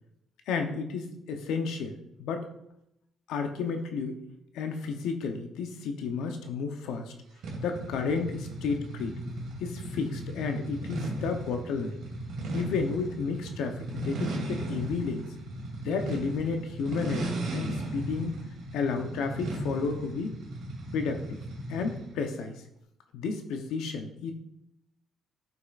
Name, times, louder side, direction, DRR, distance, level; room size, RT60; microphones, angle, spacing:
voice 1, 0.5-2.5 3.3-4.2 4.5-7.1 7.6-9.2 9.6-12.0 12.5-15.2 15.8-18.4 18.7-20.3 20.9-21.4 21.7-22.6 23.1-24.3, left 5 dB, 90° left, 5 dB, 0.8 m, -32 dB
sound 1, 7.4-22.1, right 1 dB, 80° right, 2.0 m, -36 dB
10.5 x 5.6 x 2.5 m, 0.80 s
cardioid pair, 90°, 0 cm